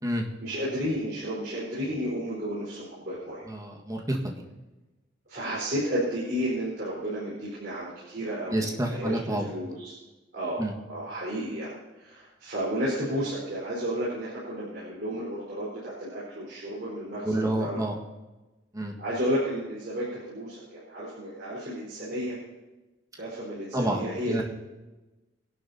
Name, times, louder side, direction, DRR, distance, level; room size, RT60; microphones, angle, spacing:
voice 1, 0.4-3.4 5.3-10.0 10.3-17.8 19.0-22.4 23.2-24.4, equal, 60° right, -8 dB, 4.6 m, -32 dB
voice 2, 3.5-4.4 8.5-9.5 10.6-10.7 17.2-18.0 18.7-18.9 23.7-24.4, right 1 dB, 20° right, 0 dB, 1.6 m, -29 dB
22.5 x 11.5 x 2.8 m, 1.1 s
head